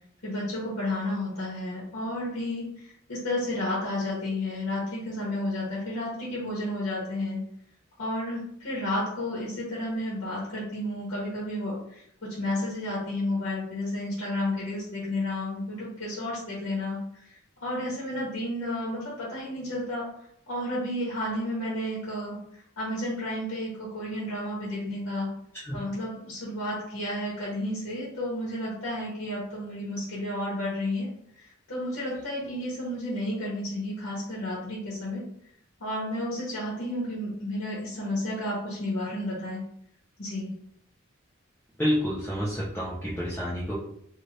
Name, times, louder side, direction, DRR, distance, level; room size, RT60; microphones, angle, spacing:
voice 1, 0.2-7.4 8.0-20.1 20.5-25.3 25.7-31.1 31.4-35.2 35.8-39.6 40.2-40.5, left 1 dB, 75° left, -7 dB, 1.0 m, -32 dB
voice 2, 41.8-43.7, equal, 10° left, -8 dB, 0.6 m, -28 dB
2.7 x 2.5 x 3.2 m, 0.71 s
head